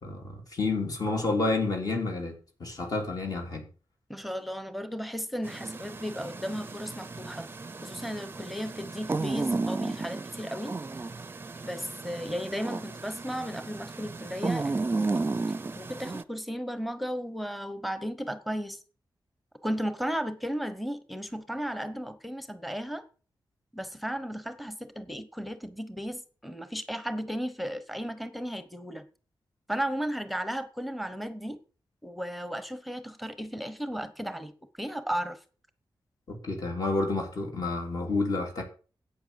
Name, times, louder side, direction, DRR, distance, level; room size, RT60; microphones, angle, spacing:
voice 1, 0.0-3.6 36.3-38.6, left 3 dB, 50° left, 3.4 m, -30 dB
voice 2, 4.1-7.5 7.8-10.8 11.6-15.3 15.8-18.8 19.6-23.0 23.7-29.0 29.7-31.6 32.0-34.5 34.8-35.4, equal, ahead, 1.0 m, -35 dB
sound 1, 5.4-16.2, right 3 dB, 25° right, 0.5 m, -34 dB
11.5 x 8.4 x 7.0 m
wide cardioid pair, 175°, 8 cm